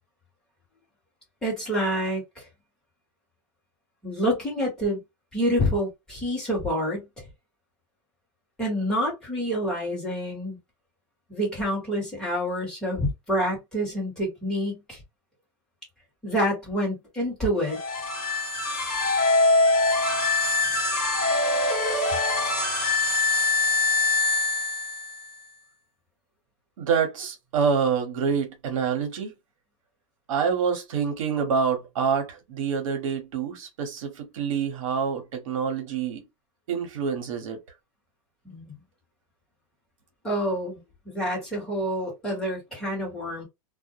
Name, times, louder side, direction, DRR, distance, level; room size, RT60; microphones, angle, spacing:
voice 1, 1.4-2.4 4.0-5.0 5.3-7.1 8.6-10.6 11.3-15.0 16.2-17.8 38.4-38.8 40.2-43.4, equal, 5° left, 1.1 m, -27 dB
sound 1, 17.6-25.3, left 3 dB, 30° left, 1.1 m, -23 dB
voice 2, 26.8-29.3 30.3-36.2 36.7-37.6, right 6 dB, 70° right, 1.0 m, -26 dB
2.2 x 2.1 x 2.6 m
supercardioid pair, 170°, 18 cm